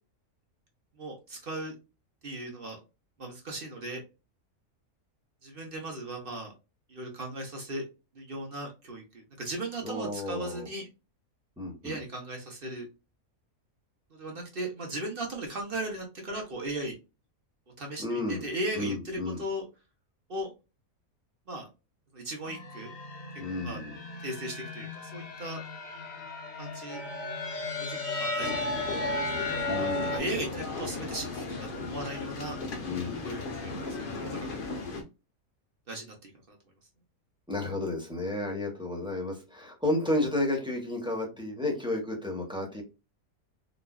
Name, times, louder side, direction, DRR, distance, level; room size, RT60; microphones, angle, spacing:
voice 1, 1.0-1.7 2.2-2.8 3.2-4.0 5.4-6.5 6.9-7.9 8.1-10.9 11.8-12.9 14.1-16.9 17.8-19.7 20.3-20.5 21.5-21.7 22.1-22.9 23.6-23.8 24.2-25.6 26.6-27.0 27.9-28.6 29.8-32.6 33.2-34.8 35.9-36.6, right 1 dB, 45° right, 1 dB, 1.0 m, -37 dB
voice 2, 9.8-10.7 11.6-12.0 18.0-18.4 18.7-19.4 23.4-23.9 29.7-30.5 32.8-33.3 37.5-42.8, left 2 dB, 5° right, -1 dB, 0.9 m, -32 dB
sound 1, 22.4-30.2, left 2 dB, 70° left, 1.3 m, -35 dB
sound 2, 28.4-35.0, left 3 dB, 45° left, 0.8 m, -36 dB
4.0 x 2.5 x 2.3 m, 0.28 s
omnidirectional pair, 1.5 m